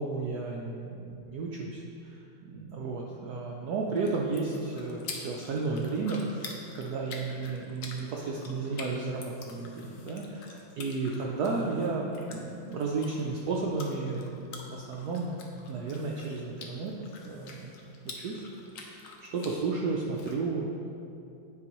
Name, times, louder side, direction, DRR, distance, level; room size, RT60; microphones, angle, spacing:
voice 1, 0.0-15.3 15.7-16.9 17.2-17.7 18.2-18.5 18.7-18.9 19.2-20.9, right 3 dB, 80° right, -2 dB, 0.8 m, -33 dB
sound 1, 3.7-20.3, left 3 dB, 75° left, 0.7 m, -47 dB
9.6 x 4.8 x 3.0 m, 2.7 s
omnidirectional pair, 2.3 m